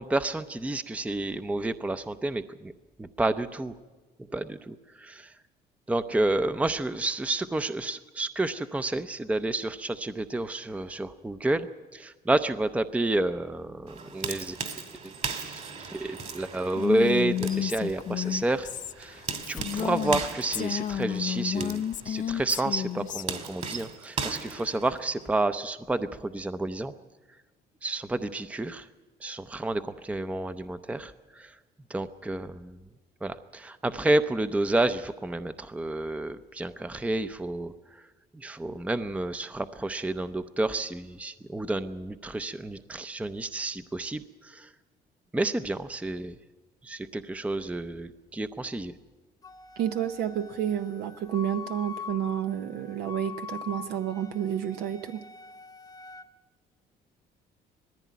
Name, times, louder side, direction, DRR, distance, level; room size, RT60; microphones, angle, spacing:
voice 1, 0.0-2.7 3.0-3.7 4.3-5.3 5.9-11.7 11.9-14.6 15.0-15.1 15.5-15.6 15.9-18.7 19.0-26.9 27.8-28.9 29.2-31.5 31.9-32.8 33.2-37.7 38.3-44.7 45.3-46.3 46.8-48.9, right 2 dB, 10° right, 11 dB, 0.6 m, -30 dB
sound 1, 13.9-25.3, right 5 dB, 45° right, 2.3 m, -38 dB
Female speech woman speaking, 16.7-20.2 20.5-23.2, left 10 dB, 50° left, 0.6 m, -31 dB
Wind instrument woodwind instrument, 49.4-56.3, left 6 dB, 20° left, 1.0 m, -43 dB
voice 2, 49.8-55.3, right 10 dB, 75° right, 8 dB, 0.8 m, -30 dB
19.5 x 15.0 x 9.3 m, 1.3 s
cardioid pair, 110°, 17 cm